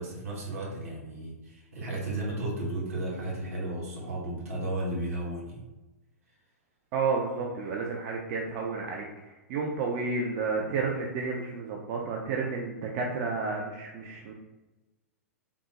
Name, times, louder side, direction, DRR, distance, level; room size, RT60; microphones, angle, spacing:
voice 1, 0.0-5.6, right 1 dB, 65° right, -4 dB, 1.1 m, -34 dB
voice 2, 6.9-14.3, right 4 dB, 40° right, 0 dB, 0.4 m, -31 dB
3.5 x 2.0 x 2.8 m, 1.1 s
figure-of-eight pair, 105°, 8 cm